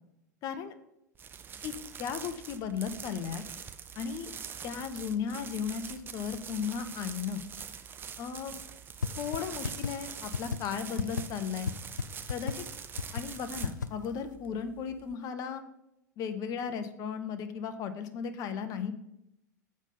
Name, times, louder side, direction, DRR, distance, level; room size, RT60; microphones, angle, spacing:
voice 1, 0.4-0.7 1.6-1.7 2.0-3.4 4.0-4.3 4.6-7.5 8.2-8.5 9.2-11.7 12.3-12.6 13.1-15.6 16.2-18.9, left 7 dB, 35° left, 9 dB, 0.8 m, -35 dB
sound 1, 1.2-15.1, right 7 dB, 20° right, 0.5 m, -44 dB
sound 2, 9.0-9.1 9.3-9.4 9.6-9.9 10.3-10.6 11.0-11.2 11.7-11.8 12.0-12.1 12.3-12.5 13.0-13.2 13.6-13.9, left 6 dB, 80° left, 0.4 m, -30 dB
7.2 x 5.3 x 5.7 m, 0.84 s
figure-of-eight pair, 90°, 10 cm